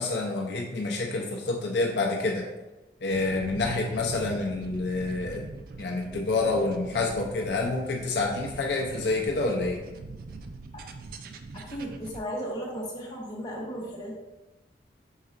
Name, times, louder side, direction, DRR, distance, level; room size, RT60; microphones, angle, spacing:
voice 1, 0.0-2.5 3.0-5.4 5.8-9.8, left 3 dB, 65° left, 1 dB, 0.5 m, -28 dB
sound 1, 3.1-12.2, right 3 dB, 50° right, 0.3 m, -42 dB
voice 2, 11.5-14.2, equal, 25° left, -4 dB, 0.9 m, -35 dB
5.4 x 3.8 x 2.4 m, 1.1 s
head